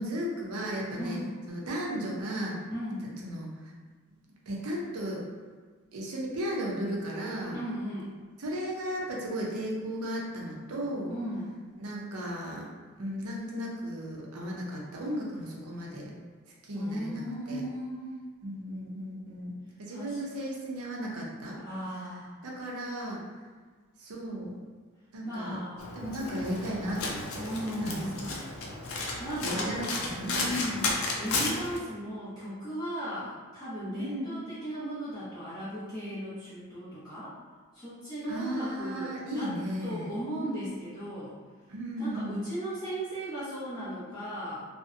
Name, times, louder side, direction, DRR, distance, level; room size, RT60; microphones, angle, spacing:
voice 1, 0.0-1.2 1.5-2.6 3.0-3.5 4.5-5.2 5.9-7.6 8.4-11.1 11.8-12.7 13.0-16.1 16.6-17.2 17.5-17.6 18.4-19.5 19.8-21.6 22.4-23.2 24.0-24.5 25.1-25.6 25.9-27.4 27.8-28.4 29.4-30.6 34.0-34.4 38.3-40.1 41.7-42.5, equal, 80° right, -3 dB, 0.6 m, -35 dB
voice 2, 1.0-1.4 2.7-3.1 7.5-8.1 11.1-11.5 16.7-18.2 19.9-20.2 21.6-22.3 25.2-25.9 27.4-28.3 29.2-29.9 30.2-37.3 37.7-39.6 39.8-41.3 42.0-44.6, equal, 15° left, -12 dB, 0.7 m, -36 dB
Domestic sounds home sounds, 25.8-31.8, left 3 dB, 70° left, 0.4 m, -33 dB
2.5 x 2.1 x 2.4 m, 1.5 s
head